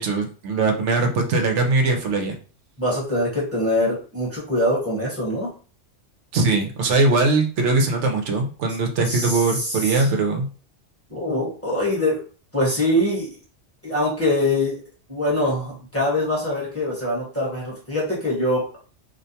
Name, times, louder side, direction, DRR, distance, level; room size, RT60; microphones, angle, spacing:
voice 1, 0.0-2.4 6.3-10.5, right 3 dB, 80° right, 3 dB, 0.9 m, -21 dB
voice 2, 2.8-5.5 9.1-10.1 11.1-12.2 12.5-13.3 13.8-14.8 15.1-18.7, left 1 dB, 15° left, -6 dB, 0.9 m, -23 dB
2.5 x 2.2 x 2.6 m, 0.39 s
omnidirectional pair, 1.2 m